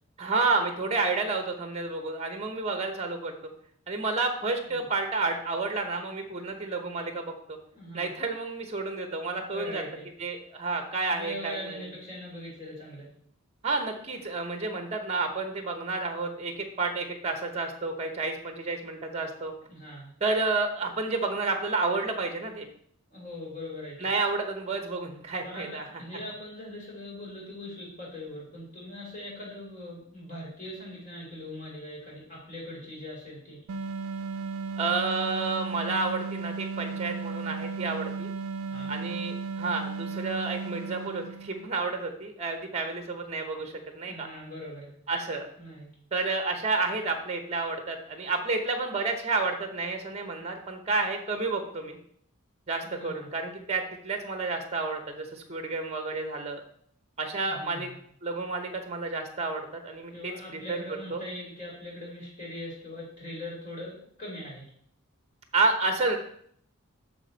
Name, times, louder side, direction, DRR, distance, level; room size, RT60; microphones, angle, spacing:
voice 1, 0.2-3.3 3.9-7.6 7.9-9.8 10.2-11.9 13.6-19.5 20.2-22.7 24.0-25.8 34.8-38.3 38.9-44.3 45.1-45.5 46.1-52.0 52.7-56.6 57.2-57.9 58.2-60.8 61.1-61.2 65.5-66.2, right 3 dB, 30° right, 5 dB, 0.9 m, -30 dB
voice 2, 7.7-8.1 9.5-10.1 11.1-13.1 19.7-20.1 23.1-24.1 25.4-25.7 26.0-33.6 38.7-38.9 44.1-44.9 45.6-45.9 52.9-53.3 57.4-57.9 60.1-64.7, left 1 dB, 35° left, -4 dB, 3.2 m, -41 dB
sound 1, 33.7-41.8, right 4 dB, 80° right, 0.4 m, -35 dB
6.6 x 6.0 x 4.1 m, 0.63 s
head